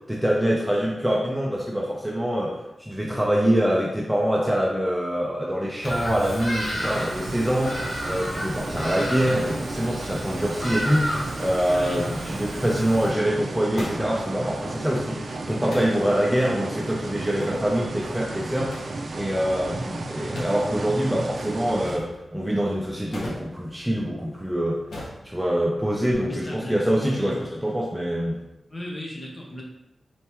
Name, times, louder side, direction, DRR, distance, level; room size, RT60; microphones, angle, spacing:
voice 1, 0.1-18.7 19.1-24.8 25.2-28.4, equal, 5° right, -3 dB, 0.5 m, -25 dB
Bird vocalization bird call bird song, 5.8-13.1, equal, 65° left, 1.1 m, -32 dB
sound 1, 6.8-22.0, right 2 dB, 65° right, 0.4 m, -34 dB
voice 2, 11.7-12.1 26.1-26.8 27.1-27.4 28.7-29.6, left 1 dB, 25° left, -2 dB, 0.9 m, -36 dB
sound 2, 12.4-26.1, left 1 dB, 85° left, 1.0 m, -43 dB
4.3 x 3.3 x 2.9 m, 0.90 s
wide cardioid pair, 145°, 0 cm